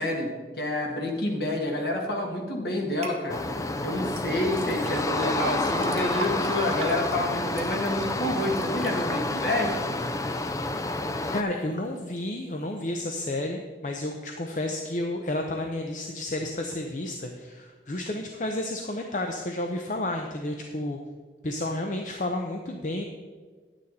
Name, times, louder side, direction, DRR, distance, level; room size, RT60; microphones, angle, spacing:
voice 1, 0.0-3.5 3.8-10.0, left 1 dB, 60° left, 1 dB, 1.8 m, -28 dB
sound 1, 3.0-3.2 4.1-10.2 10.7-11.2 11.7-11.8, right 4 dB, 35° right, 1.0 m, -42 dB
sound 2, 3.3-11.4, left 2 dB, 20° left, 0.4 m, -29 dB
voice 2, 11.3-21.0 21.4-23.0, left 1 dB, 45° left, 3 dB, 0.7 m, -31 dB
10.5 x 9.0 x 4.2 m, 1.5 s
head